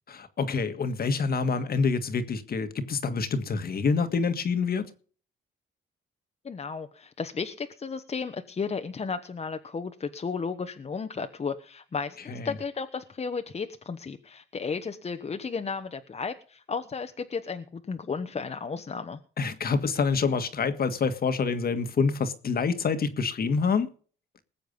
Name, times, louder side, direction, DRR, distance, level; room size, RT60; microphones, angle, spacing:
voice 1, 0.1-4.9 12.3-12.5 19.4-23.9, left 5 dB, 50° left, 1.7 m, -27 dB
voice 2, 6.4-19.2, left 5 dB, 35° left, 1.2 m, -34 dB
20.0 x 7.7 x 5.4 m
cardioid pair, 90°, 20 cm